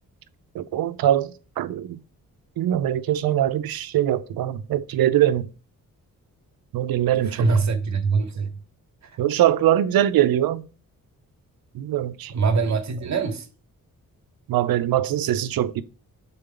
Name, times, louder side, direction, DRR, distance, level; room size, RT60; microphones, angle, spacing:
voice 1, 0.5-2.0 2.6-5.5 6.7-7.5 9.2-10.6 11.7-12.4 14.5-15.8, right 12 dB, 85° right, 0.6 m, -22 dB
voice 2, 7.2-8.5 9.0-9.2 12.3-13.5, right 4 dB, 50° right, 1.0 m, -23 dB
6.8 x 4.0 x 3.8 m
cardioid pair, 90°, 35 cm